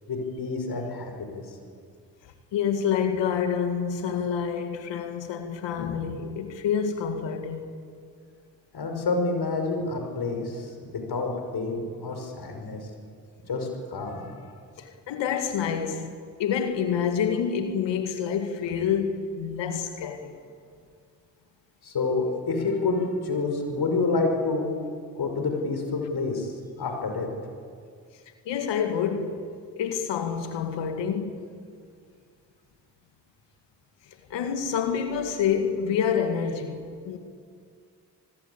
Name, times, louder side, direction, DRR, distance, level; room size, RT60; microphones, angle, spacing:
voice 1, 0.1-1.4 8.7-12.8 13.5-14.3 21.8-24.7 25.2-27.3, left 3 dB, 60° left, 5.8 m, -28 dB
voice 2, 2.5-7.8 14.8-20.4 24.8-24.9 28.5-29.4 29.8-31.3 34.3-37.2, left 7 dB, 80° left, 2.1 m, -27 dB
26.5 x 20.5 x 8.4 m
hypercardioid pair, 45°, 43 cm